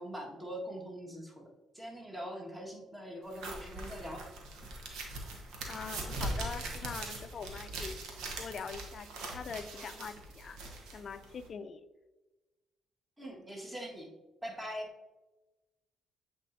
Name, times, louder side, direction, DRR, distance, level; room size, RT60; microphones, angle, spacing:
voice 1, 0.0-1.5 1.7-4.3 13.2-14.1 14.4-14.9, equal, 15° right, 0 dB, 1.6 m, -42 dB
sound 1, 3.3-11.5, right 2 dB, 80° right, 1.1 m, -41 dB
voice 2, 5.7-7.9 8.4-10.6 10.9-11.8, left 6 dB, 50° left, 11 dB, 0.4 m, -43 dB
8.2 x 4.2 x 2.7 m, 1.1 s
supercardioid pair, 70°, 0 cm